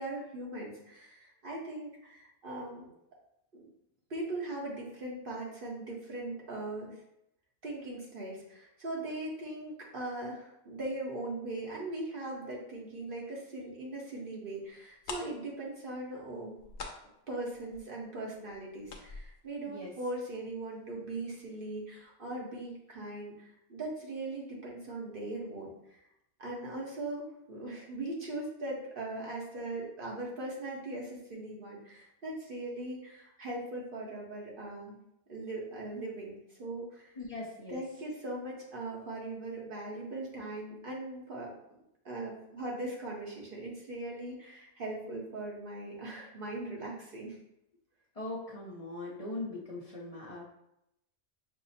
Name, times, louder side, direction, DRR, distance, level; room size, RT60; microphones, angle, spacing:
voice 1, 0.0-2.9 3.5-3.6 4.1-7.0 7.6-16.6 17.3-25.7 26.4-34.9 35.3-37.1 37.7-41.6 42.0-47.4, right 2 dB, 50° right, -3 dB, 1.1 m, -40 dB
sound 1, 14.7-14.8 15.0-20.6 20.8-20.9 21.4-21.6 21.9-22.0, left 4 dB, 75° left, 0.9 m, -46 dB
voice 2, 37.2-37.8 48.1-50.4, left 2 dB, 35° left, -5 dB, 0.7 m, -40 dB
5.6 x 2.1 x 4.1 m, 0.82 s
omnidirectional pair, 1.2 m